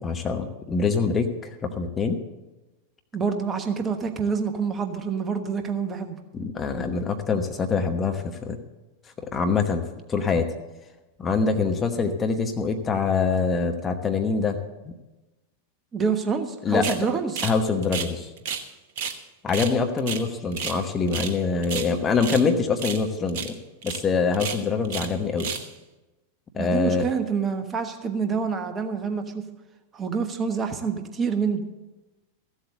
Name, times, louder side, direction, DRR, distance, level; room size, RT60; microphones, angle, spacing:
voice 1, 0.0-2.2 6.3-8.6 9.3-9.8 10.1-10.5 11.2-14.6 14.8-14.9 16.6-16.8 17.4-18.3 19.4-23.5 23.8-25.5 26.5-27.0, left 4 dB, 20° left, 5 dB, 1.1 m, -24 dB
voice 2, 3.1-6.2 15.9-17.4 26.6-29.5 29.9-31.6, right 5 dB, 20° right, 6 dB, 1.2 m, -27 dB
sound 1, 16.8-17.0 17.4-17.6 17.8-18.7 19.0-19.2 19.5-20.8 21.1-21.4 21.6-22.5 22.8-23.0 23.3-23.5 23.8-24.0 24.3-25.1 25.4-25.7, right 7 dB, 50° right, 1.1 m, -32 dB
14.5 x 7.9 x 6.8 m, 1.1 s
figure-of-eight pair, 90°, 0 cm